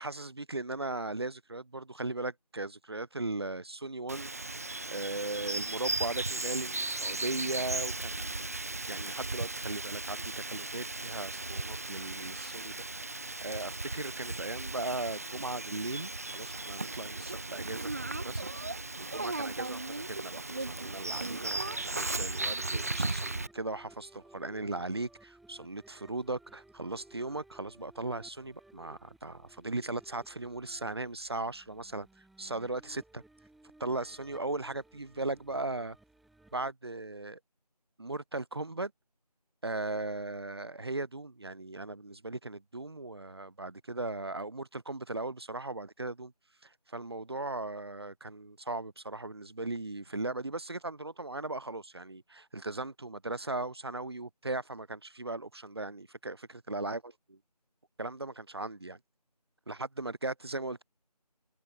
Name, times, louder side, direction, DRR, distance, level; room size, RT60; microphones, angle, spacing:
voice 1, 0.0-4.3 4.9-8.5 8.8-18.5 19.0-33.2 33.8-36.0 36.5-37.4 38.0-38.9 39.6-46.3 46.9-57.4 58.0-59.0 59.7-60.8, right 2 dB, 35° right, 1.8 m, -38 dB
Bird vocalization bird call bird song, 4.1-23.5, right 2 dB, 20° right, 1.4 m, -36 dB
sound 1, 18.3-36.7, right 2 dB, ahead, 4.7 m, -59 dB
figure-of-eight pair, 170°, 21 cm